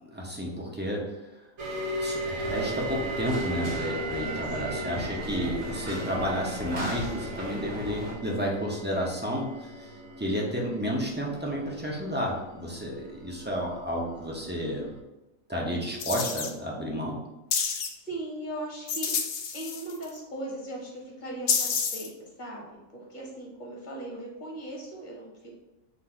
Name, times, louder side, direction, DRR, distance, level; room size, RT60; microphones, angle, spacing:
voice 1, 0.1-1.0 2.0-9.9 10.2-14.9 15.5-17.2, equal, 15° right, -3 dB, 0.4 m, -31 dB
sound 1, 1.6-15.0, right 2 dB, 65° right, 1.1 m, -38 dB
sound 2, 2.4-8.1, equal, 40° right, 1.1 m, -36 dB
voice 2, 4.4-5.1 17.8-19.1 19.5-25.5, right 1 dB, 35° left, -3 dB, 1.1 m, -39 dB
sound 3, 16.0-16.5 17.5-17.9 18.9-20.1 21.5-22.1, left 6 dB, 65° left, 0.6 m, -28 dB
3.9 x 2.6 x 4.4 m, 1.0 s
omnidirectional pair, 1.5 m